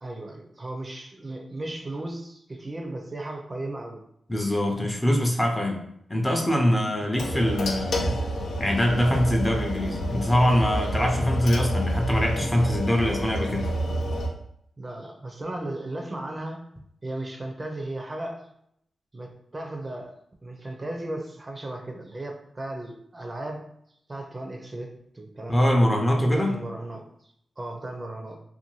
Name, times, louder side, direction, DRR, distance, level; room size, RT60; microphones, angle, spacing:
voice 1, 0.0-4.0 8.4-8.5 14.8-16.7 17.0-18.5 19.1-23.7 24.1-25.7 26.3-28.4, right 1 dB, 35° right, 2 dB, 0.5 m, -36 dB
voice 2, 4.3-5.8 6.1-8.2 8.6-13.7 25.5-26.5, equal, 20° left, 1 dB, 0.6 m, -23 dB
sound 1, 7.2-14.3, equal, 75° left, 0.5 m, -29 dB
2.6 x 2.2 x 3.0 m, 0.72 s
cardioid pair, 50°, 0 cm